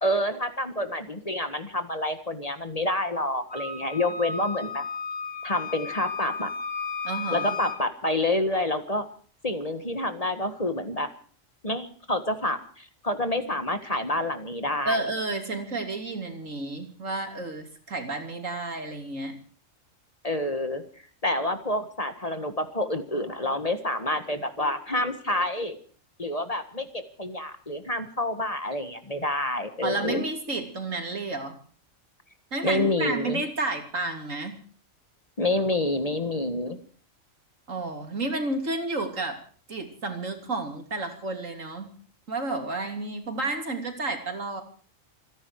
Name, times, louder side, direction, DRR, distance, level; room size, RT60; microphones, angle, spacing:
voice 1, 0.0-4.8 5.4-6.5 7.3-9.1 9.4-11.1 11.6-15.0 20.2-20.8 21.2-25.8 26.2-26.9 27.2-30.2 32.6-33.4 35.4-36.8, left 1 dB, 30° left, 9 dB, 1.7 m, -28 dB
Wind instrument woodwind instrument, 3.5-7.8, left 4 dB, 70° left, 4.2 m, -34 dB
voice 2, 7.0-7.6 14.9-19.4 29.8-31.6 32.5-34.6 37.7-39.4 39.7-42.0 42.3-44.6, right 2 dB, 75° right, 5 dB, 3.4 m, -31 dB
28.0 x 11.0 x 4.8 m, 0.43 s
omnidirectional pair, 1.4 m